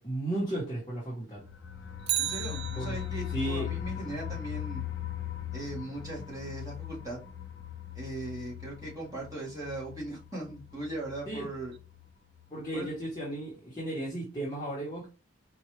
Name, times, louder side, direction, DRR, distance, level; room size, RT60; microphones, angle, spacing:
voice 1, 0.0-1.4 2.8-3.0 3.3-3.7 11.3-11.5 12.5-15.1, right 1 dB, 20° left, 1.1 m, -34 dB
sound 1, 1.4-12.1 12.4-12.5 12.8-12.9, left 10 dB, 65° left, 0.6 m, -39 dB
Bicycle, 2.0-3.4 11.7-11.8, right 11 dB, 50° right, 0.3 m, -34 dB
voice 2, 2.2-4.8 5.5-7.2 7.9-11.7 12.7-12.9, right 2 dB, 15° right, 1.4 m, -39 dB
4.4 x 2.4 x 3.1 m
head